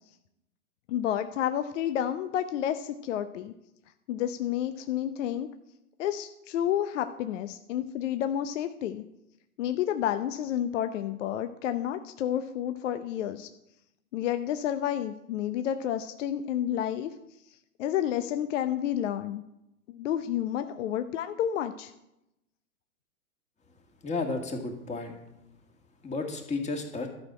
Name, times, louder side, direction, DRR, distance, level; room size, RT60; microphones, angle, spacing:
voice 1, 0.9-3.5 4.1-5.5 6.0-9.0 9.6-13.5 14.1-17.1 17.8-19.4 19.9-21.9, left 10 dB, 55° left, 10 dB, 0.7 m, -30 dB
voice 2, 24.0-25.1 26.0-27.1, left 3 dB, 15° left, 3 dB, 1.9 m, -32 dB
12.5 x 6.4 x 7.5 m, 0.88 s
hypercardioid pair, 120°, 46 cm